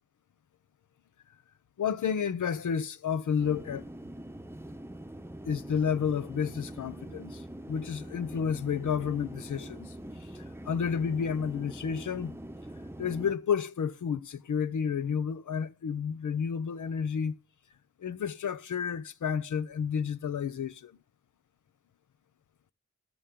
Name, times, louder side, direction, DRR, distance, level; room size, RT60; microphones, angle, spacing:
voice 1, 1.8-3.8 5.5-7.4 7.7-9.9 10.7-12.4 13.0-17.4 18.0-20.9, left 7 dB, 85° left, 0.7 m, -31 dB
Airplane taxi on runway and take off, 3.4-13.3, right 1 dB, 10° right, 0.8 m, -44 dB
19.5 x 7.0 x 3.7 m
cardioid pair, 55°, 30 cm